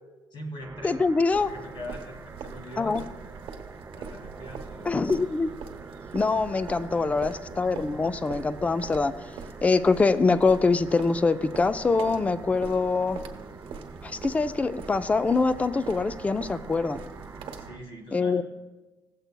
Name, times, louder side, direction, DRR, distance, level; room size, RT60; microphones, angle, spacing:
voice 1, 0.3-1.0 1.4-3.4 4.0-5.0 7.0-7.2 17.6-18.4, equal, 65° left, 1 dB, 2.2 m, -42 dB
sound 1, 0.6-17.8, right 4 dB, 25° right, 0.6 m, -45 dB
voice 2, 0.8-1.5 2.8-3.0 4.9-5.5 6.1-9.1 9.6-13.2 14.0-17.0 18.1-18.4, left 4 dB, 15° left, 13 dB, 0.3 m, -24 dB
sound 2, 1.3-17.7, right 6 dB, 85° right, 1.0 m, -43 dB
16.5 x 7.9 x 2.2 m, 1.1 s
cardioid pair, 125°, 9 cm